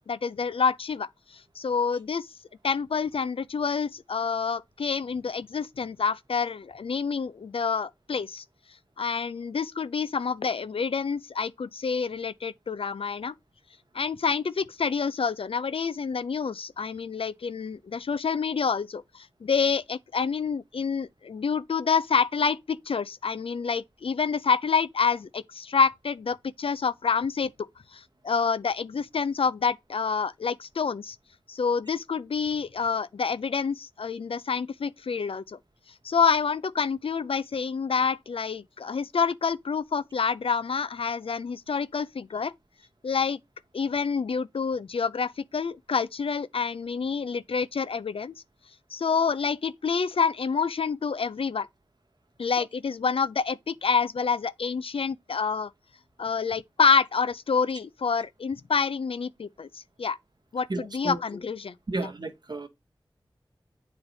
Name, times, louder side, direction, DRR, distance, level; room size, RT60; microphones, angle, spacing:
voice 1, 0.1-2.3 2.6-8.4 9.0-13.3 13.9-27.5 27.9-31.2 31.5-35.6 36.0-42.5 43.0-43.4 43.7-48.3 48.9-51.7 52.4-55.7 56.2-60.2 60.5-61.7, left 5 dB, 85° left, 0.4 m, -27 dB
voice 2, 60.7-61.2 61.9-62.7, right 2 dB, 50° right, 1.1 m, -32 dB
8.8 x 3.2 x 3.9 m
wide cardioid pair, 50°, 9 cm